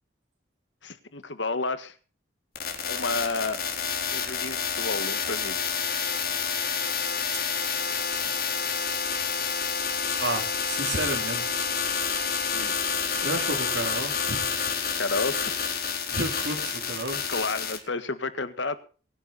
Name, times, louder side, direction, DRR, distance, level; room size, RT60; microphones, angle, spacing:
voice 1, 0.8-1.9 2.9-3.6 4.1-5.7 12.5-12.7 15.0-15.6 17.3-18.8, left 3 dB, 80° left, 12 dB, 1.7 m, -31 dB
sound 1, 2.6-17.8, left 6 dB, 55° left, 4.1 m, -29 dB
voice 2, 10.2-11.6 13.2-14.8 16.1-17.2, right 2 dB, 90° right, 1 dB, 3.8 m, -32 dB
23.0 x 10.5 x 4.3 m, 0.39 s
head